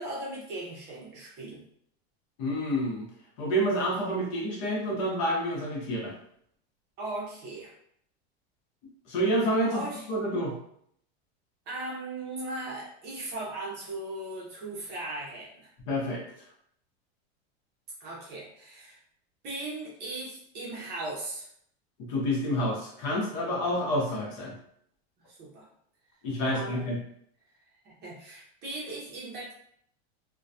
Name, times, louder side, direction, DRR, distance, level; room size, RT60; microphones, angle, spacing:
voice 1, 0.0-1.7 7.0-7.7 9.7-10.1 11.7-15.7 18.0-19.0 19.4-21.5 25.3-25.7 26.4-26.9 27.8-29.5, right 2 dB, 30° right, -5 dB, 0.7 m, -38 dB
voice 2, 2.4-3.1 3.4-6.1 9.1-9.8 10.1-10.5 15.9-16.2 22.1-24.5 26.2-27.0, equal, 45° left, -3 dB, 0.8 m, -28 dB
2.2 x 2.2 x 2.6 m, 0.68 s
supercardioid pair, 160°, 33 cm